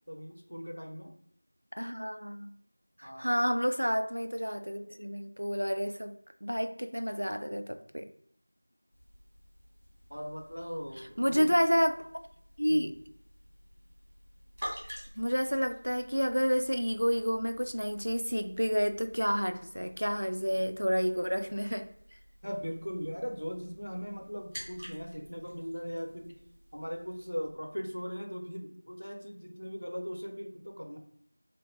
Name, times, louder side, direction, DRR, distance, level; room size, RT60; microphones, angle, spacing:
voice 1, 0.1-1.1 3.0-3.3 10.1-11.5 11.9-12.0 12.7-13.0 22.4-26.4 26.7-31.0, equal, 70° left, 4 dB, 0.5 m, -39 dB
voice 2, 1.7-2.5 3.0-6.2 6.4-8.1 11.2-12.0 12.6-12.9 15.2-21.9, equal, 85° right, 8 dB, 0.3 m, -29 dB
sound 1, 8.9-27.5, equal, ahead, 0.3 m, -50 dB
2.8 x 2.0 x 2.8 m, 0.69 s
figure-of-eight pair, 180°, 0 cm